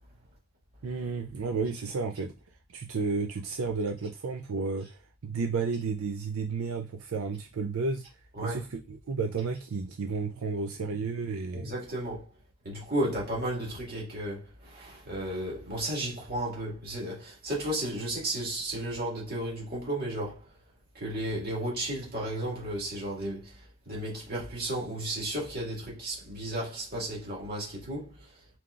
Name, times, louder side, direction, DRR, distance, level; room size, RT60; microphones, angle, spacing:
voice 1, 0.8-2.3 2.7-8.0 8.4-11.7, right 4 dB, 85° right, 0.5 m, -32 dB
voice 2, 11.5-12.3 12.6-20.4 21.0-23.5 23.9-28.1, right 1 dB, 45° right, 2.0 m, -33 dB
4.4 x 3.8 x 2.4 m
head